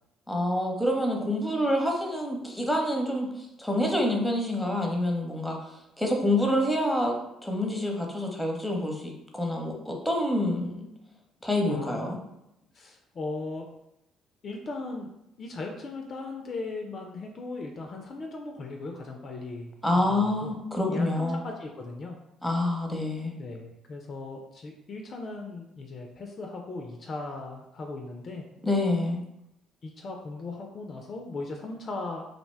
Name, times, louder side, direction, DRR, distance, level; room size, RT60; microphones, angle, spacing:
voice 1, 0.3-10.9 11.4-12.2 19.8-21.4 22.4-23.4 28.6-29.2, left 1 dB, 5° left, 1 dB, 0.7 m, -27 dB
voice 2, 11.7-12.2 12.7-13.7 14.4-15.1 15.4-20.5 20.9-22.2 23.4-28.4 29.8-32.2, left 3 dB, 45° left, 2 dB, 0.3 m, -38 dB
2.4 x 2.1 x 3.3 m, 0.84 s
hypercardioid pair, 55°, 0 cm